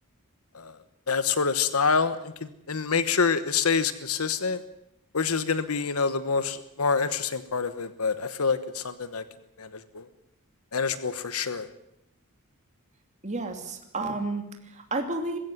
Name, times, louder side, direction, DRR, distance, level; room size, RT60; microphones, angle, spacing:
voice 1, 1.1-4.6 5.1-9.2 9.6-10.1 10.7-11.7, left 5 dB, 80° left, 12 dB, 1.2 m, -27 dB
voice 2, 13.2-15.4, right 2 dB, 35° right, 4 dB, 2.8 m, -31 dB
21.5 x 16.0 x 9.4 m, 0.82 s
head